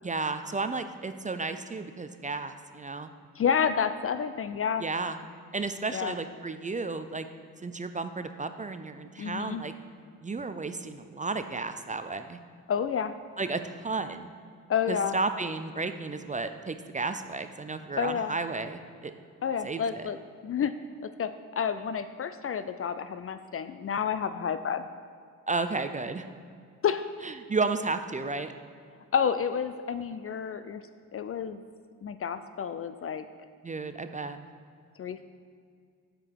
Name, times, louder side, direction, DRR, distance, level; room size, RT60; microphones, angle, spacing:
voice 1, 0.0-3.1 4.8-5.2 5.5-7.3 7.6-9.7 10.2-12.4 13.4-14.3 14.9-19.1 19.6-20.1 25.5-26.3 27.2-28.5 33.6-34.4, right 3 dB, 20° right, 9 dB, 0.5 m, -33 dB
voice 2, 3.4-4.9 5.9-6.1 9.2-9.6 12.7-13.2 14.7-15.2 18.0-18.3 19.4-20.2 20.4-20.7 21.2-24.9 26.8-27.1 29.1-30.8 31.1-31.6 32.0-33.2 35.0-35.2, left 7 dB, 35° left, 11 dB, 0.4 m, -29 dB
8.1 x 5.1 x 4.6 m, 2.2 s
hypercardioid pair, 40°, 41 cm